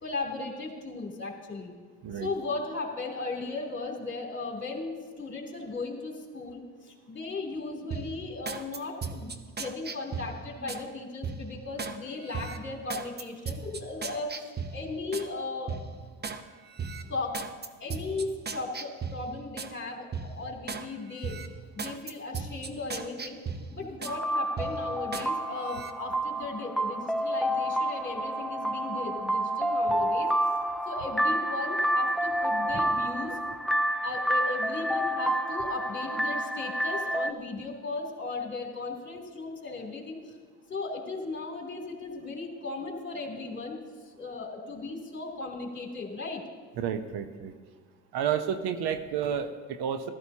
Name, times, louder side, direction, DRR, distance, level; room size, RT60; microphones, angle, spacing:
voice 1, 0.0-1.7 2.1-9.3 9.6-15.7 17.1-17.3 17.8-21.4 21.7-23.4 23.7-30.3 30.8-33.4 34.0-40.4 40.7-43.8 44.2-46.4, left 3 dB, 30° left, 0 dB, 3.1 m, -36 dB
sound 1, 7.9-10.8 11.2-12.0 12.3-15.3 15.7-16.4 16.8-19.7 20.1-20.9 21.2-24.2 24.6-25.3 25.6-25.9, right 5 dB, 25° right, 0.8 m, -37 dB
sound 2, 24.1-37.3, right 1 dB, ahead, 0.4 m, -29 dB
voice 2, 46.8-47.5 48.1-50.1, right 8 dB, 75° right, 9 dB, 0.9 m, -30 dB
14.5 x 13.5 x 2.9 m, 1.5 s
supercardioid pair, 70°, 39 cm